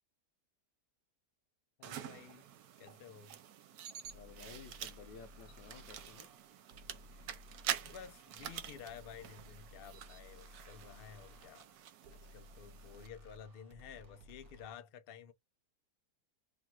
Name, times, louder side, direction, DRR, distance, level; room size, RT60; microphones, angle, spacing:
voice 1, 1.8-2.5 2.8-3.4 7.1-7.3 7.8-11.7 12.1-15.3, left 8 dB, 65° left, 0.5 m, -52 dB
sound 1, 1.8-13.1, right 10 dB, 70° right, 1.1 m, -47 dB
sound 2, 4.0-14.7, left 1 dB, 50° right, 1.2 m, -58 dB
voice 2, 4.1-6.3, left 6 dB, 80° left, 1.5 m, -54 dB
3.5 x 2.5 x 4.3 m
omnidirectional pair, 1.8 m